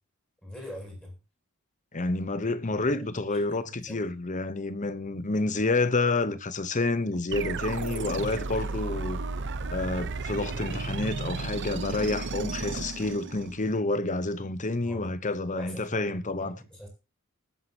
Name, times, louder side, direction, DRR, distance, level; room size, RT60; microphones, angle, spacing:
voice 1, 0.4-1.1 2.7-3.0 3.3-4.0 14.8-15.1 15.5-16.9, equal, 5° left, 7.8 m, -43 dB
voice 2, 1.9-9.2 9.7-16.6, left 2 dB, 35° left, 1.0 m, -29 dB
sound 1, 7.3-13.8, right 3 dB, 55° right, 0.9 m, -33 dB
20.0 x 9.8 x 2.9 m
head